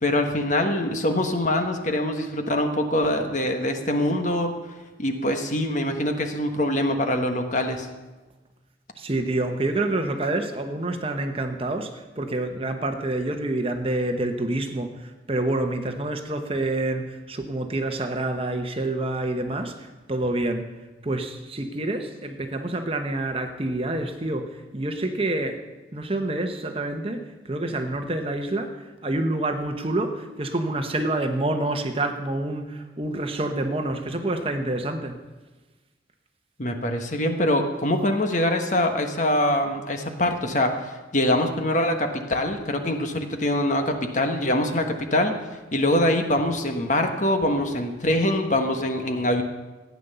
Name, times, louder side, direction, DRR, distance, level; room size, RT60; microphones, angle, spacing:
voice 1, 0.0-4.6 5.0-7.9 36.6-45.4 45.7-49.4, left 1 dB, 40° left, 5 dB, 1.3 m, -24 dB
voice 2, 9.0-20.7 21.0-25.6 25.9-35.2, right 2 dB, 30° right, 6 dB, 1.0 m, -27 dB
15.0 x 9.5 x 6.8 m, 1.2 s
head